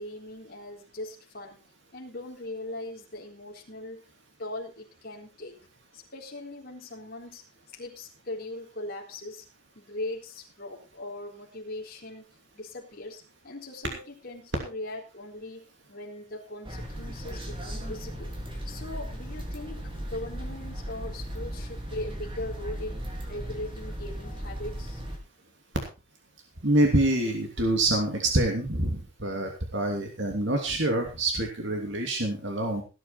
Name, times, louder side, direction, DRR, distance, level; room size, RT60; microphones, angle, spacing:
voice 1, 0.0-1.6 1.9-4.0 4.4-5.6 5.9-7.4 7.7-9.4 9.8-18.3 18.6-23.0 23.3-25.0, left 1 dB, 45° left, -1 dB, 3.9 m, -40 dB
sound 1, 16.6-25.2, equal, 25° right, 3.6 m, -37 dB
voice 2, 26.6-32.8, right 1 dB, 55° right, 2 dB, 2.9 m, -26 dB
17.5 x 9.5 x 4.3 m, 0.31 s
head